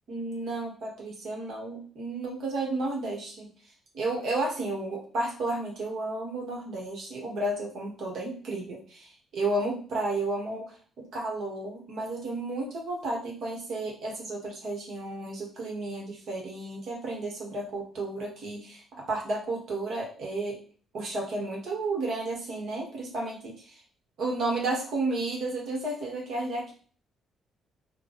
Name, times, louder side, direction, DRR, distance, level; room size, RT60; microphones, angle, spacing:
voice 1, 0.1-3.5 3.9-20.6 20.9-23.8 24.2-26.7, right 2 dB, 70° right, -2 dB, 1.4 m, -32 dB
3.3 x 2.3 x 4.0 m, 0.42 s
cardioid pair, 90°, 0 cm